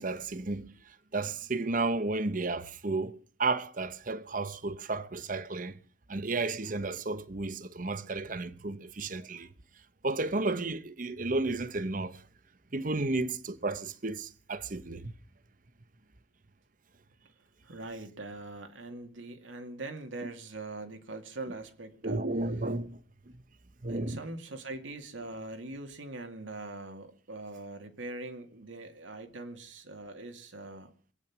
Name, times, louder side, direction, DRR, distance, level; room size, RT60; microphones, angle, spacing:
voice 1, 0.0-5.8 6.1-9.5 10.0-12.2 12.7-15.1 22.0-23.0 23.3-23.4 23.8-24.2, right 3 dB, 45° right, 0.9 m, -33 dB
voice 2, 17.6-22.2 23.8-30.9, right 2 dB, 85° right, 2.3 m, -42 dB
23.5 x 9.1 x 6.1 m
head